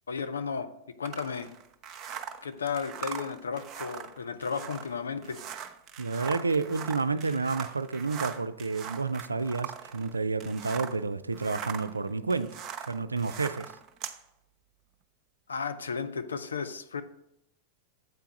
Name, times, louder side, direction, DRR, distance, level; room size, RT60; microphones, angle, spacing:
voice 1, 0.1-0.7 1.0-1.5 2.4-5.4 15.5-17.0, left 5 dB, 70° left, 0.5 m, -34 dB
sound 1, 1.0-11.0 11.3-14.2, right 8 dB, 30° right, 0.6 m, -40 dB
voice 2, 6.0-12.6 12.9-13.7, right 4 dB, 80° right, 0.3 m, -30 dB
7.9 x 4.6 x 5.0 m
figure-of-eight pair, 90°, 0 cm